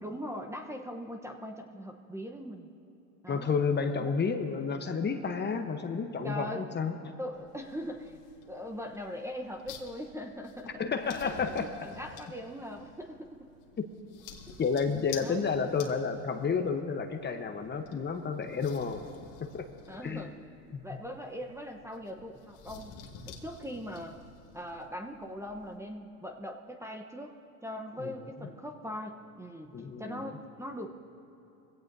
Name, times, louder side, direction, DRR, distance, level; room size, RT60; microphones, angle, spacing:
voice 1, 0.0-2.7 3.2-3.6 4.0-4.1 6.2-6.7 7.2-8.2 8.5-10.8 11.2-13.5 14.5-14.6 15.2-15.4 19.9-20.3 20.8-23.0 23.3-24.2 24.5-27.4 27.6-30.9, equal, 5° right, 3 dB, 0.9 m, -41 dB
voice 2, 3.3-7.1 10.8-11.7 13.8-13.9 14.6-19.1 19.4-19.7 20.0-20.2 20.7-20.8 28.0-28.1 29.7-30.3, left 5 dB, 25° left, 6 dB, 1.0 m, -31 dB
sound 1, 7.3-25.8, left 6 dB, 80° left, 2.0 m, -51 dB
22.5 x 16.5 x 2.7 m, 3.0 s
supercardioid pair, 105°, 41 cm